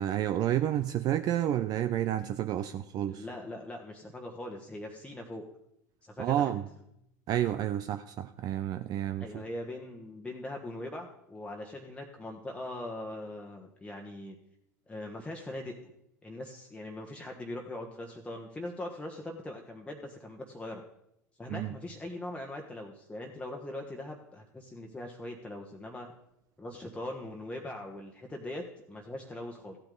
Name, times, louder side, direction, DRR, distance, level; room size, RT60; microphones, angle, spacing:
voice 1, 0.0-3.3 6.2-6.7 7.3-9.4 21.5-21.7, right 12 dB, 45° right, 11 dB, 0.5 m, -30 dB
voice 2, 3.1-5.4 6.0-6.5 9.2-14.4 14.9-15.8 16.2-20.8 21.4-26.1 26.6-29.8, left 1 dB, 10° left, 1 dB, 1.3 m, -41 dB
15.0 x 9.0 x 3.9 m, 0.80 s
hypercardioid pair, 80°, 9 cm